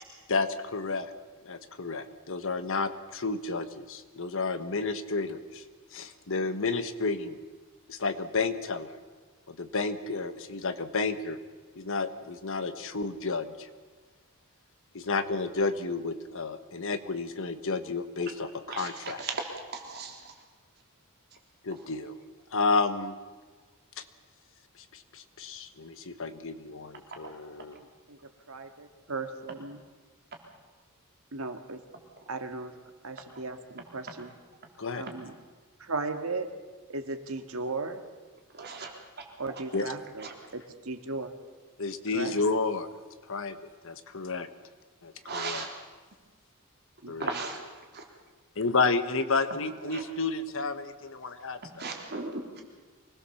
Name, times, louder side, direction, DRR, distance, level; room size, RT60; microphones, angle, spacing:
voice 1, 0.3-1.1 1.4-5.6 5.9-7.4 7.9-9.0 9.5-11.4 11.8-13.7 14.9-19.2 21.6-22.1 22.5-23.2 24.0-24.1 24.9-27.8 34.8-35.0 39.7-39.9 41.8-42.9 43.3-43.6 43.8-44.5 45.0-45.7 47.1-47.4 48.6-51.8, left 3 dB, 60° left, 10 dB, 1.3 m, -31 dB
voice 2, 18.7-19.4 19.7-20.2 38.6-38.9 40.2-40.3 45.3-45.7 47.2-47.6 47.9-48.0 49.9-50.0 51.8-52.6, right 4 dB, 50° right, 1 dB, 3.7 m, -36 dB
voice 3, 27.7-28.2 28.5-29.8 31.3-31.8 32.3-32.7 33.0-34.3 34.9-35.3 35.8-36.5 36.9-38.0 39.4-40.3 40.5-41.3 42.1-42.4 47.0-47.3, right 3 dB, 70° right, 6 dB, 1.9 m, -36 dB
24.5 x 19.5 x 7.1 m, 1.4 s
head